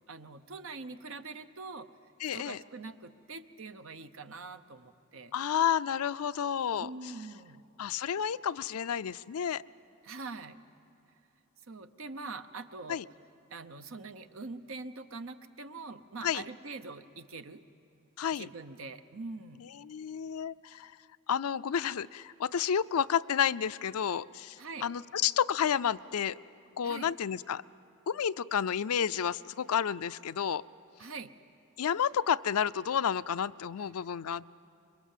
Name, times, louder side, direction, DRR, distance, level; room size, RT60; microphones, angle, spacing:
voice 1, 0.1-1.9 2.3-5.3 6.8-7.6 10.0-10.6 11.7-13.0 13.5-17.6 18.3-19.7 24.6-24.9 26.8-27.1 31.0-31.3 33.8-33.9, right 3 dB, 65° right, 9 dB, 0.9 m, -44 dB
voice 2, 2.2-2.6 5.3-6.9 7.8-9.6 12.9-13.1 16.2-16.4 18.2-18.5 19.8-20.9 21.3-26.4 26.8-27.6 28.1-30.6 31.8-34.6, left 8 dB, 90° left, 15 dB, 0.4 m, -31 dB
25.5 x 22.5 x 7.4 m, 2.9 s
head